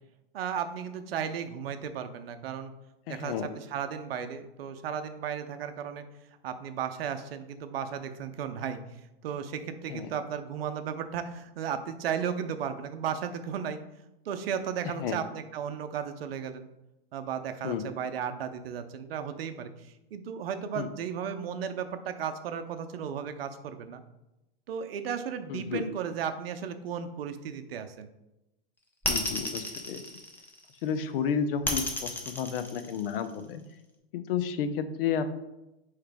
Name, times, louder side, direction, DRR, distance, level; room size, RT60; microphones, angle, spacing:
voice 1, 0.3-2.7 3.1-6.0 6.4-8.8 9.2-13.8 14.3-16.7 17.1-24.0 24.7-28.1, right 8 dB, 75° right, 9 dB, 0.6 m, -35 dB
voice 2, 3.1-3.5 9.9-10.1 14.8-15.2 17.6-17.8 20.8-20.9 25.5-25.8 29.1-30.0 30.8-33.6 34.1-35.4, left 7 dB, 65° left, 10 dB, 0.6 m, -31 dB
sound 1, 29.0-30.8 31.6-33.4, left 2 dB, 5° left, 0.5 m, -32 dB
4.7 x 3.2 x 3.4 m, 0.94 s
hypercardioid pair, 130°, 30 cm